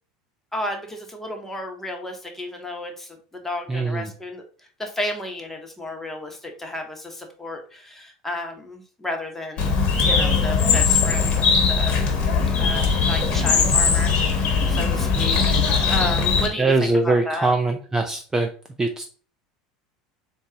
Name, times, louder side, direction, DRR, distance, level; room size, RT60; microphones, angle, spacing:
voice 1, 0.5-4.4 4.8-9.7 10.0-12.0 12.6-17.5, left 1 dB, 10° left, 2 dB, 1.1 m, -32 dB
voice 2, 3.7-4.1 16.6-18.5 18.8-19.0, right 3 dB, 15° right, 6 dB, 0.4 m, -22 dB
Bird, 9.6-16.5, left 5 dB, 45° left, 1.1 m, -20 dB
3.9 x 2.3 x 3.8 m, 0.43 s
hypercardioid pair, 80°, 3 cm